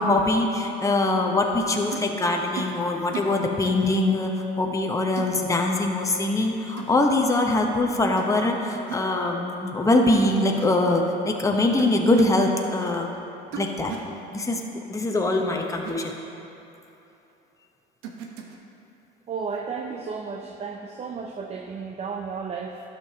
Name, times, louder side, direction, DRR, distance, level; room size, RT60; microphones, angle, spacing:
voice 1, 0.0-13.1 13.5-13.9 14.3-14.6 14.9-16.1, left 2 dB, 15° left, 1 dB, 0.9 m, -23 dB
sound 1, 1.9-2.1 2.6-2.8 3.1-3.4 3.7-3.9 5.2-5.4 6.8-7.0 8.2-8.4 8.7-9.1 10.3-10.7 11.8-12.3 13.5-14.1 15.7-15.9 18.0-18.6, right 6 dB, 80° right, 1.0 m, -36 dB
voice 2, 19.3-22.8, right 5 dB, 30° right, 3 dB, 0.6 m, -33 dB
12.0 x 6.8 x 2.8 m, 2.9 s
supercardioid pair, 85°, 21 cm